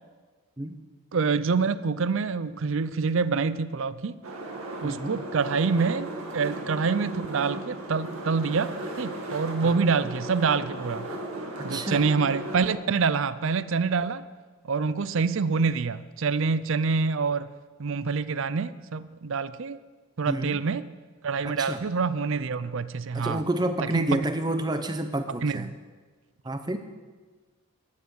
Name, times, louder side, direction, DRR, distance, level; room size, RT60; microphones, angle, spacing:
voice 1, 1.1-4.2 4.8-11.1 11.6-14.3 14.6-17.5 17.8-19.8 20.2-20.9 21.2-23.4 23.9-24.2 25.4-25.7, right 5 dB, 60° right, 15 dB, 0.5 m, -26 dB
sound 1, 4.2-12.7, right 1 dB, 75° right, 2.1 m, -36 dB
voice 2, 4.8-5.2 9.6-9.7 11.7-12.0 20.3-20.6 21.4-21.8 23.1-25.7 26.4-26.8, right 1 dB, 20° right, 8 dB, 0.7 m, -29 dB
13.5 x 9.5 x 6.4 m, 1.4 s
head